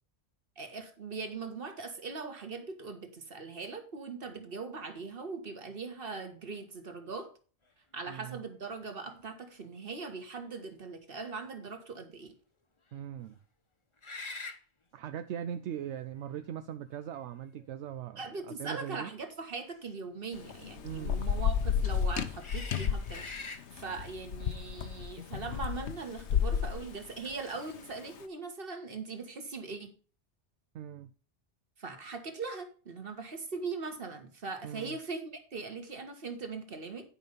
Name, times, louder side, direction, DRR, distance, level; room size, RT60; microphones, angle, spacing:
voice 1, 0.6-7.3 7.9-12.3 18.2-29.9 31.8-37.1, right 4 dB, 50° right, 1.7 m, -40 dB
voice 2, 8.1-8.4 12.9-13.4 14.9-19.1 20.8-21.3 30.7-31.1 34.6-35.0, right 9 dB, 80° right, 0.9 m, -40 dB
sound 1, 8.8-8.9 9.4-9.5 14.0-14.6 15.8-15.9 16.9-17.7 19.7-19.9 22.4-23.6, left 3 dB, 30° left, 0.9 m, -43 dB
Thunder / Rain, 20.3-28.0, left 7 dB, 75° left, 1.1 m, -32 dB
10.5 x 5.4 x 5.3 m
omnidirectional pair, 1.2 m